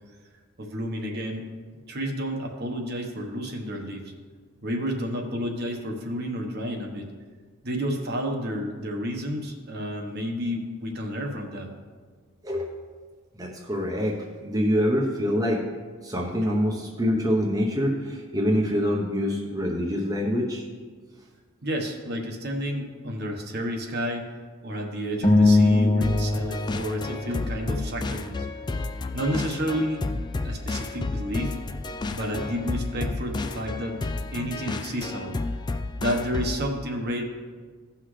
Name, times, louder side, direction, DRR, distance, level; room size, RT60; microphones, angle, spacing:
voice 1, 0.6-1.5 1.9-4.0 4.6-7.1 7.6-11.7 21.6-24.3 24.6-28.4 29.1-31.6 32.1-34.0 34.3-35.4 36.0-37.2, equal, 50° right, 1 dB, 1.1 m, -30 dB
voice 2, 13.4-14.2 14.4-15.6 16.0-20.6, equal, 15° right, -2 dB, 0.9 m, -25 dB
sound 1, 25.2-27.8, left 2 dB, 65° left, 1.4 m, -22 dB
sound 2, 26.0-36.7, left 3 dB, 20° left, 0.3 m, -31 dB
15.5 x 5.8 x 3.2 m, 1.5 s
head